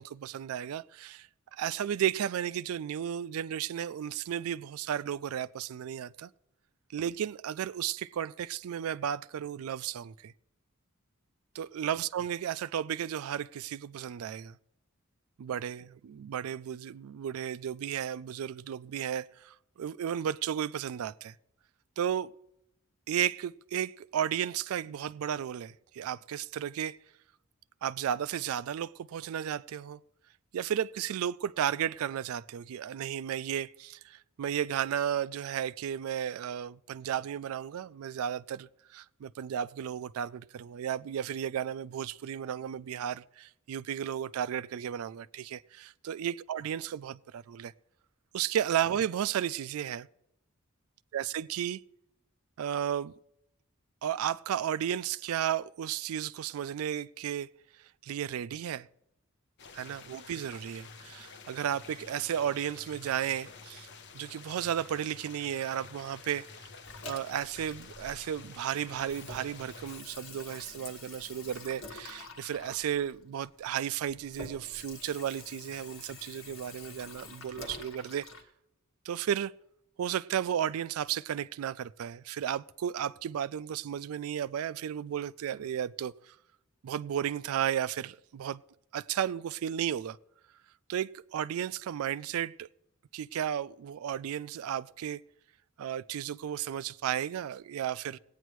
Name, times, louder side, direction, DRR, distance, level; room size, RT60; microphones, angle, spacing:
voice 1, 0.0-6.3 6.9-10.3 11.5-14.6 15.4-21.4 22.0-22.3 23.1-27.0 27.8-30.0 30.5-47.7 48.3-50.1 51.1-51.8 52.6-53.1 54.0-57.5 58.0-58.9 59.7-63.9 64.1-66.7 67.1-78.3 79.0-79.5 80.0-86.4 86.8-88.6 88.9-90.2 90.9-92.7 93.1-95.2 95.8-98.2, right 9 dB, 85° right, 0.3 m, -34 dB
sound 1, 59.6-70.0, left 5 dB, 55° left, 0.8 m, -50 dB
Water tap faucet / Sink (filling or washing), 66.8-68.6 68.9-78.4, left 3 dB, 75° left, 1.6 m, -47 dB
18.5 x 9.1 x 3.1 m
head